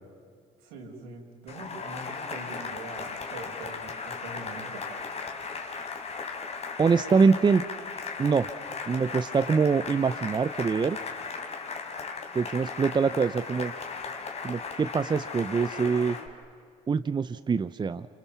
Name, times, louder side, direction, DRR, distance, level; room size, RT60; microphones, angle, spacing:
voice 1, 0.6-4.8, right 3 dB, 80° right, 2 dB, 5.5 m, -43 dB
Cheering / Applause, 1.5-16.3, left 5 dB, 40° left, 3.8 m, -37 dB
voice 2, 6.8-7.6 8.2-8.5 8.9-11.0 12.3-13.7 14.4-16.2 16.9-18.1, right 5 dB, 25° right, 12 dB, 0.8 m, -24 dB
28.5 x 28.0 x 7.1 m, 2.2 s
hypercardioid pair, 75°, 17 cm